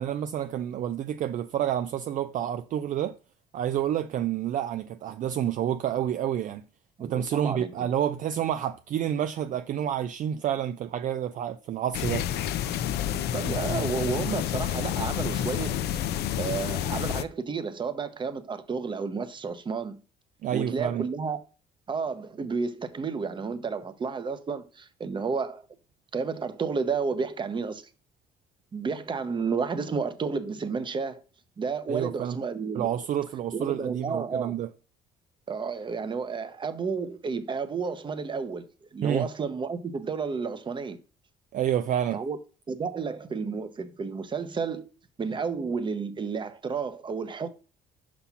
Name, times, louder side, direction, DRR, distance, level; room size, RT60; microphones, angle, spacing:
voice 1, 0.0-3.2 3.5-6.6 7.0-12.2 20.4-21.1 31.9-32.4 32.7-34.7 39.0-39.3 41.5-42.2, right 10 dB, 50° right, 0.4 m, -29 dB
voice 2, 7.0-7.7 13.3-15.8 16.4-20.0 20.5-21.4 21.9-25.6 26.1-27.8 28.7-31.2 31.6-32.9 33.5-34.6 35.5-38.7 38.9-41.0 42.1-42.4 42.7-44.9 45.2-47.5, right 5 dB, 30° right, 0.9 m, -31 dB
sound 1, 11.9-17.2, left 10 dB, 75° left, 0.6 m, -29 dB
5.6 x 4.2 x 5.8 m
cardioid pair, 110°, 17 cm